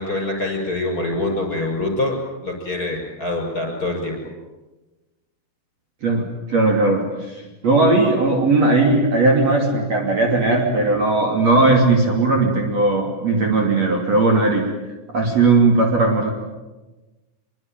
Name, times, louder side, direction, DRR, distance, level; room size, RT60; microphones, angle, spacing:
voice 1, 0.0-4.2, left 2 dB, 20° left, 3 dB, 6.8 m, -25 dB
voice 2, 6.0-14.6 15.1-16.3, right 3 dB, 45° right, 1 dB, 3.8 m, -18 dB
25.0 x 23.5 x 9.1 m, 1.1 s
omnidirectional pair, 4.6 m